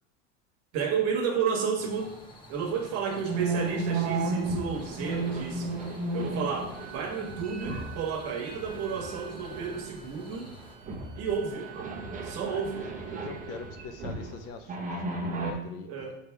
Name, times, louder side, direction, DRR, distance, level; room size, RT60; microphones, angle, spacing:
voice 1, 0.7-2.2 2.5-5.7 6.1-10.5 11.2-11.9 12.2-12.9 15.8-16.2, right 6 dB, 45° right, 2 dB, 1.4 m, -32 dB
sound 1, 1.8-10.8, left 1 dB, 15° left, 0.9 m, -50 dB
sound 2, 3.3-8.1 8.4-10.0 10.3-10.5 10.9-14.3 14.7-15.5, right 3 dB, 25° right, 1.0 m, -33 dB
Wind instrument woodwind instrument, 6.7-14.5, right 8 dB, 85° right, 1.3 m, -50 dB
voice 2, 13.2-16.2, left 5 dB, 45° left, 8 dB, 0.6 m, -43 dB
6.6 x 3.4 x 4.7 m, 0.82 s
supercardioid pair, 130°, 34 cm